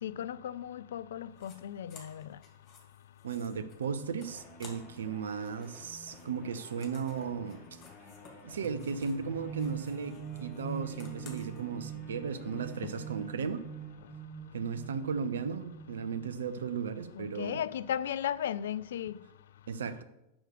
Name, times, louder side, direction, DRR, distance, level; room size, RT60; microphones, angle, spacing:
voice 1, 0.0-2.4 12.8-12.9 17.1-19.2, left 10 dB, 60° left, 0.3 m, -36 dB
sound 1, 1.3-1.6 1.9-5.1 5.4-9.3 9.5-11.6, left 5 dB, 30° left, 2.5 m, -56 dB
voice 2, 3.2-7.6 8.4-13.6 14.5-17.6 19.7-20.0, right 6 dB, 65° right, 0.7 m, -36 dB
sound 2, 4.2-14.5, left 1 dB, 10° left, 3.1 m, -54 dB
sound 3, 8.6-16.4, right 9 dB, 25° right, 0.9 m, -44 dB
6.4 x 6.0 x 6.4 m
figure-of-eight pair, 90°, 0 cm